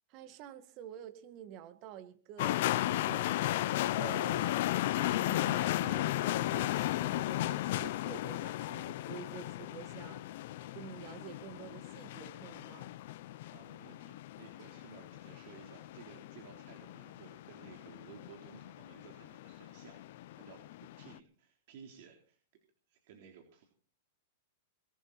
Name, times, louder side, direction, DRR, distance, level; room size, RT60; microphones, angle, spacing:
voice 1, 0.1-3.5 3.8-10.2 10.7-12.9, right 11 dB, 45° right, 11 dB, 2.0 m, -49 dB
sound 1, 2.4-21.2, left 15 dB, 60° left, 0.8 m, -35 dB
voice 2, 13.5-22.4 22.9-23.6, right 7 dB, 60° right, 2 dB, 3.7 m, -56 dB
21.0 x 12.5 x 4.3 m, 0.42 s
hypercardioid pair, 125°, 0 cm